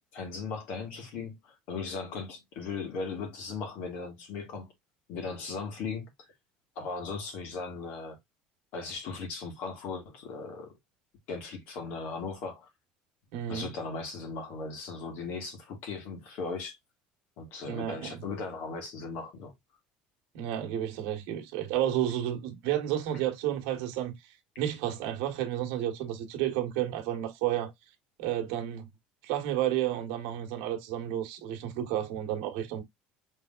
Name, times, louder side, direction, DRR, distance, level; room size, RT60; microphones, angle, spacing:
voice 1, 0.1-4.7 5.1-6.1 6.8-8.2 8.7-10.7 11.3-12.7 13.5-16.8 17.4-19.5, left 4 dB, 55° left, 1.8 m, -37 dB
voice 2, 13.3-13.7 17.6-18.2 20.3-24.1 24.6-27.7 28.2-28.9 29.2-32.8, right 11 dB, 70° right, 1.4 m, -31 dB
5.6 x 3.5 x 2.4 m
cardioid pair, 175°, 3 cm